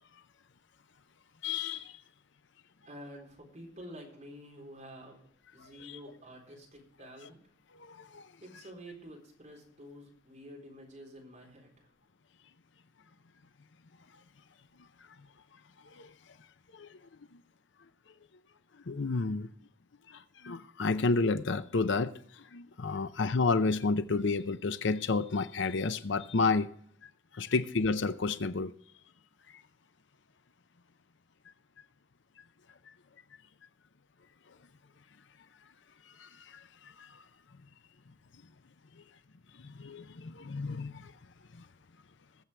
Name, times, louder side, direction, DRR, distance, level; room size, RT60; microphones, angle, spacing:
voice 1, 1.4-1.9 5.8-5.9 7.8-8.2 16.0-16.1 16.7-16.9 18.9-19.5 20.1-22.1 22.5-26.7 27.3-28.7 36.2-36.6 37.0-37.1 39.6-41.1, left 3 dB, 60° left, 0.6 m, -30 dB
voice 2, 2.9-7.4 8.4-11.9, equal, 35° right, 4.0 m, -49 dB
21.0 x 7.4 x 3.3 m
head